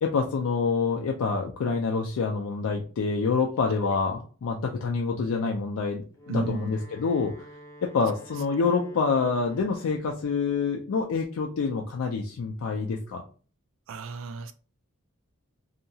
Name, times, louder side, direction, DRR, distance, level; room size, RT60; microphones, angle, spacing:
voice 1, 0.0-7.5 7.8-13.2, left 4 dB, 75° left, 0.4 m, -27 dB
Wind instrument woodwind instrument, 6.0-10.2, equal, 15° left, 0.5 m, -48 dB
voice 2, 6.3-6.7 13.9-14.5, right 3 dB, 60° right, 0.3 m, -33 dB
2.8 x 2.3 x 2.6 m
head